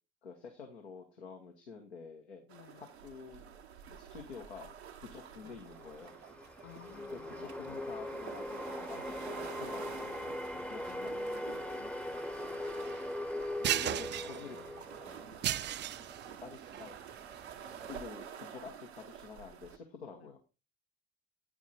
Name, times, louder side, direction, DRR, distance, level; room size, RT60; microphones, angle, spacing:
voice 1, 0.2-2.5 2.7-3.5 3.9-6.1 7.1-10.4 10.6-11.7 13.7-14.6 15.0-15.3 16.4-17.0 17.8-20.4, left 5 dB, 85° left, 0.9 m, -49 dB
voice 2, 2.5-2.9 5.4-5.6 6.6-7.4 10.9-12.3 13.6-13.8 14.1-15.2 15.6-16.1 20.1-20.4, left 12 dB, 50° left, 0.5 m, -58 dB
sound 1, 2.5-19.8, right 8 dB, 85° right, 0.7 m, -49 dB
sound 2, 5.4-15.7, left 1 dB, 5° left, 0.6 m, -41 dB
sound 3, 9.2-18.1, right 12 dB, 35° right, 0.4 m, -39 dB
8.7 x 6.0 x 3.9 m
figure-of-eight pair, 40°, 32 cm